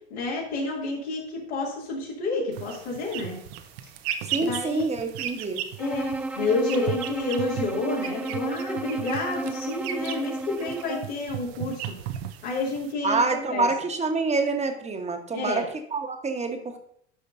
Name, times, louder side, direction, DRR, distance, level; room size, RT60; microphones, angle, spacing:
voice 1, 0.1-3.4 4.3-4.9 5.8-11.9 12.4-13.7 15.3-15.6, left 2 dB, 75° left, -4 dB, 2.5 m, -29 dB
sound 1, 2.5-12.9, right 10 dB, 65° right, 0.8 m, -36 dB
voice 2, 4.2-5.6 13.0-16.8, right 3 dB, 20° right, 5 dB, 1.2 m, -27 dB
Bowed string instrument, 5.8-11.2, right 2 dB, 5° right, 0.3 m, -33 dB
12.0 x 5.1 x 2.6 m, 0.69 s
hypercardioid pair, 75°, 34 cm